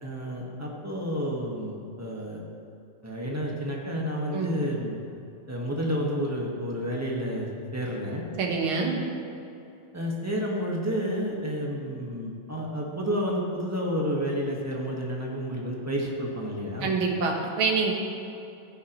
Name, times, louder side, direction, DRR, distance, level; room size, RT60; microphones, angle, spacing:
voice 1, 0.0-2.4 3.0-4.9 5.5-8.2 9.9-17.0, equal, 10° right, -3 dB, 1.1 m, -30 dB
voice 2, 8.4-9.0 16.8-17.9, right 4 dB, 70° right, 0 dB, 2.2 m, -26 dB
15.0 x 10.0 x 3.1 m, 2.7 s
omnidirectional pair, 2.4 m